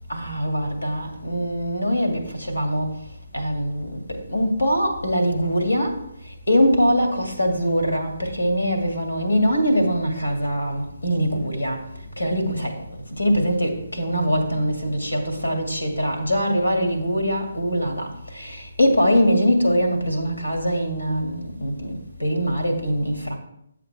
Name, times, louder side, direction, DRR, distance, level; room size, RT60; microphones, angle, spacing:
voice 1, 0.1-3.0 3.3-11.9 12.2-23.4, equal, 75° left, 2.1 m, -23 dB
10.5 x 7.4 x 3.5 m
figure-of-eight pair, 140°, 0 cm